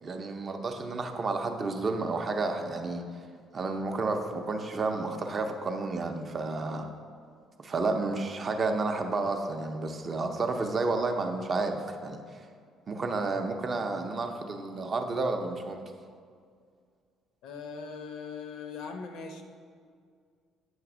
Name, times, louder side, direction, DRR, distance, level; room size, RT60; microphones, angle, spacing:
voice 1, 0.0-3.0 3.5-6.9 7.6-12.2 12.9-15.8, right 3 dB, 25° right, 5 dB, 0.5 m, -31 dB
voice 2, 17.4-19.4, left 5 dB, 75° left, 5 dB, 0.8 m, -40 dB
8.6 x 3.3 x 6.0 m, 2.1 s
cardioid pair, 170°, 0 cm